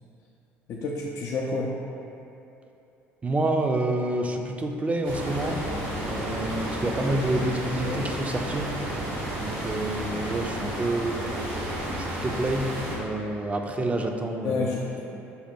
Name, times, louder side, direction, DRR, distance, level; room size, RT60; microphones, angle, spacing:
voice 1, 0.7-1.7 7.6-8.1 14.4-15.0, left 3 dB, 55° left, -3 dB, 0.4 m, -30 dB
voice 2, 3.2-5.6 6.0-8.7 9.4-11.2 12.0-14.7, right 2 dB, 25° right, 3 dB, 0.4 m, -28 dB
sound 1, 5.0-13.0, equal, 85° right, 1.0 m, -32 dB
5.4 x 2.1 x 4.3 m, 2.9 s
supercardioid pair, 70°, 6 cm